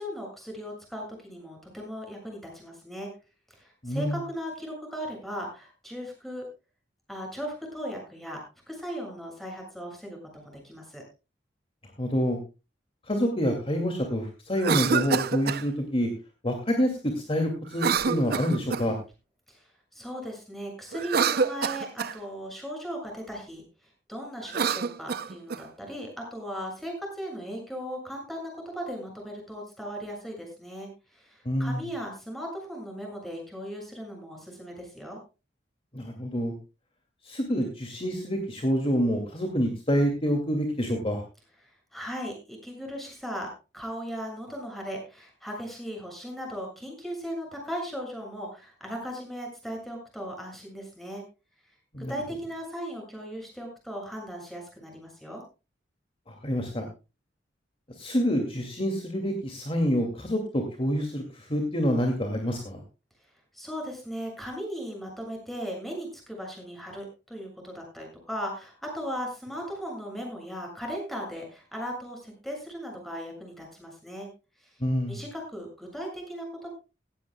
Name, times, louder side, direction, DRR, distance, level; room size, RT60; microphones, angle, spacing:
voice 1, 0.0-3.1 3.5-6.4 7.1-11.0 19.5-23.6 24.1-35.2 41.6-43.5 43.7-51.2 52.1-55.4 63.5-74.3 74.6-74.7 75.1-76.7, equal, ahead, 0 dB, 7.3 m, -37 dB
voice 2, 3.8-4.2 12.0-12.4 13.1-16.1 16.4-19.0 31.5-31.8 35.9-36.5 37.2-41.2 51.9-52.1 56.3-56.9 58.0-62.8 74.8-75.2, equal, 30° left, 3 dB, 2.5 m, -27 dB
Cough, 14.5-15.6 17.7-19.0 20.9-22.2 24.4-25.6, right 6 dB, 60° right, 0.6 m, -27 dB
17.5 x 15.5 x 2.3 m, 0.30 s
head